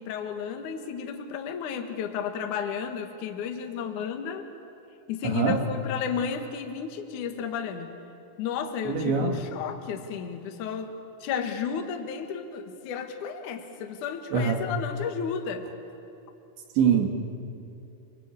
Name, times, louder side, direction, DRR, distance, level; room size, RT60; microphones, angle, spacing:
voice 1, 0.0-4.5 5.1-7.9 8.4-10.9 11.2-15.7, left 7 dB, 55° left, 5 dB, 2.5 m, -33 dB
voice 2, 5.2-5.6 8.9-9.4 14.3-14.6 16.8-17.1, right 6 dB, 75° right, 3 dB, 4.3 m, -23 dB
30.0 x 22.5 x 8.5 m, 2.7 s
omnidirectional pair, 5.3 m